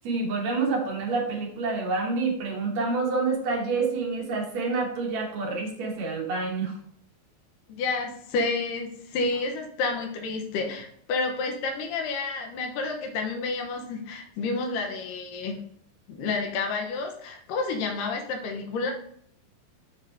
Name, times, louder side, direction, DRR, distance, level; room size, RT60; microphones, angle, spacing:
voice 1, 0.0-6.8, right 4 dB, 65° right, 1 dB, 2.0 m, -28 dB
voice 2, 7.7-15.6 16.1-18.9, left 3 dB, 80° left, 2 dB, 2.5 m, -30 dB
7.0 x 3.0 x 5.4 m, 0.64 s
omnidirectional pair, 4.0 m